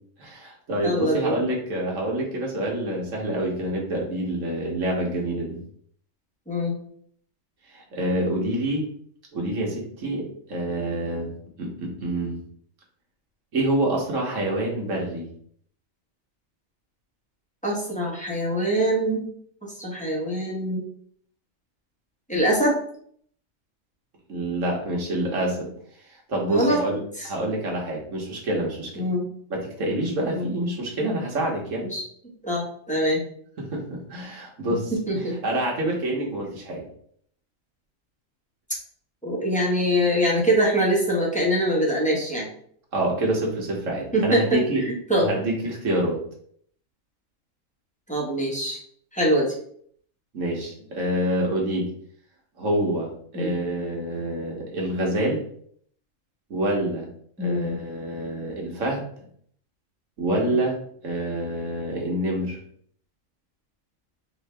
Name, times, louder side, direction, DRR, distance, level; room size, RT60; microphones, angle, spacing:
voice 1, 0.2-5.6 7.7-8.9 9.3-12.4 13.5-15.3 24.3-25.7 26.1-27.0 27.2-29.0 29.5-31.8 33.6-36.8 42.9-44.8 45.2-46.2 50.3-51.9 52.6-55.4 56.5-57.1 57.4-59.0 60.2-60.8 61.0-62.6, right 1 dB, 70° right, -2 dB, 1.6 m, -27 dB
voice 2, 0.8-1.4 6.5-6.7 17.6-19.3 19.8-20.8 22.3-22.8 26.5-26.8 27.2-27.3 29.0-29.3 30.3-30.5 31.9-32.0 32.4-33.2 34.9-35.4 39.2-42.5 44.1-45.3 48.1-48.8 49.1-49.5 53.3-53.5 57.4-57.8 60.3-60.5, equal, 5° left, -4 dB, 1.2 m, -23 dB
4.8 x 2.8 x 3.4 m, 0.62 s
omnidirectional pair, 1.4 m